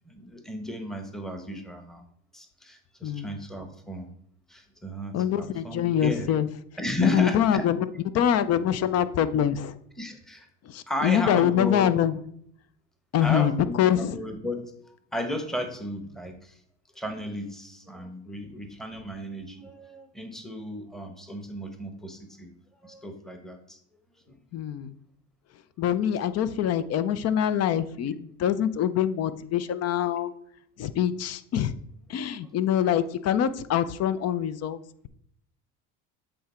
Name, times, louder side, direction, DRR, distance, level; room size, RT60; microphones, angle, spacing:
voice 1, 0.1-2.0 2.3-4.1 4.5-6.3 6.8-7.7 10.0-10.5 10.9-11.9 13.2-16.6 16.9-22.5 22.8-23.8, equal, ahead, 5 dB, 1.1 m, -34 dB
voice 2, 5.1-6.5 7.0-9.8 10.7-12.2 13.1-14.2 24.5-24.9 25.8-30.3 30.8-31.7 32.1-34.8, left 9 dB, 45° left, 15 dB, 0.6 m, -25 dB
7.9 x 3.8 x 4.4 m, 0.69 s
supercardioid pair, 90°, 38 cm